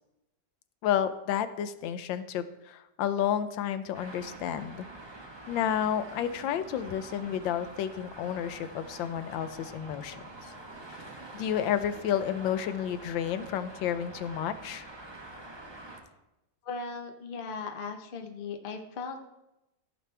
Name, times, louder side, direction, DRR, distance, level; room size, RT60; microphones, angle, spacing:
voice 1, 0.8-4.9 5.5-10.2 10.9-11.0 11.3-14.9, left 9 dB, 85° left, 12 dB, 1.3 m, -31 dB
Traffic noise roadway noise, 3.9-16.0, right 2 dB, 20° right, 0.9 m, -46 dB
voice 2, 16.6-19.3, left 4 dB, 40° left, 4 dB, 0.8 m, -38 dB
14.5 x 6.1 x 3.3 m, 0.92 s
omnidirectional pair, 2.0 m